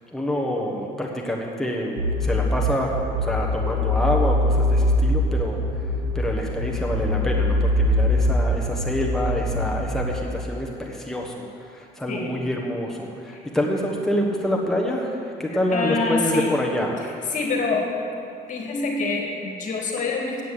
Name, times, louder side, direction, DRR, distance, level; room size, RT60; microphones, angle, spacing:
voice 1, 0.0-5.6 6.1-17.1, left 1 dB, ahead, -1 dB, 1.2 m, -27 dB
sound 1, 2.0-10.2, left 1 dB, 90° right, 1.8 m, -23 dB
voice 2, 15.7-16.6 17.0-17.9 18.5-20.4, left 3 dB, 50° left, 1 dB, 2.0 m, -26 dB
9.1 x 8.3 x 7.8 m, 2.5 s
cardioid pair, 110°, 17 cm